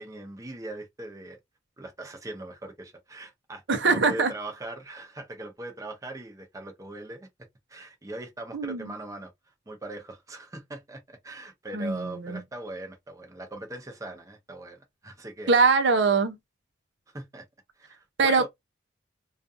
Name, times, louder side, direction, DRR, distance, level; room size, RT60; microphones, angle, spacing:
voice 1, 0.0-1.4 1.8-7.3 7.7-9.3 9.7-15.5 17.1-17.5 17.8-18.5, right 2 dB, 15° right, 0.6 m, -40 dB
voice 2, 3.7-4.3 8.5-8.9 11.7-12.4 15.5-16.4 18.2-18.5, right 4 dB, 65° right, 0.6 m, -22 dB
2.5 x 2.3 x 2.5 m
head